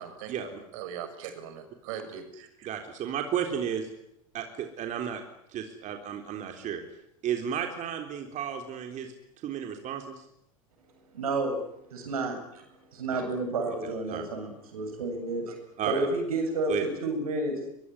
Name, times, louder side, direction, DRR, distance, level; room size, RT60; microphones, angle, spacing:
voice 1, 0.0-2.7, right 8 dB, 65° right, 9 dB, 6.5 m, -41 dB
voice 2, 2.6-3.9 4.3-5.2 5.5-6.8 7.2-9.1 9.4-10.3 13.1-13.2 13.8-14.2 15.8-16.1 16.7-16.8, right 8 dB, 45° right, 4 dB, 3.7 m, -33 dB
voice 3, 11.1-11.6 11.9-12.6 12.9-15.5 15.9-17.7, right 2 dB, 80° right, 6 dB, 7.8 m, -30 dB
24.0 x 22.5 x 9.9 m, 0.79 s
hypercardioid pair, 90°, 18 cm